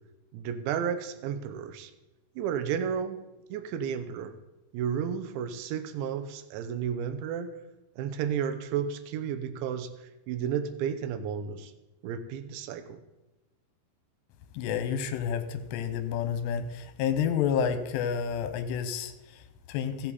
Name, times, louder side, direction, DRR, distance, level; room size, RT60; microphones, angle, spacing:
voice 1, 0.3-1.9 2.4-3.2 3.5-4.4 4.7-7.5 8.0-9.9 10.3-11.7 12.0-13.0, right 8 dB, 85° right, 8 dB, 3.1 m, -32 dB
voice 2, 14.5-20.1, left 7 dB, 80° left, 9 dB, 2.9 m, -30 dB
15.0 x 8.3 x 4.1 m, 1.0 s
omnidirectional pair, 5.1 m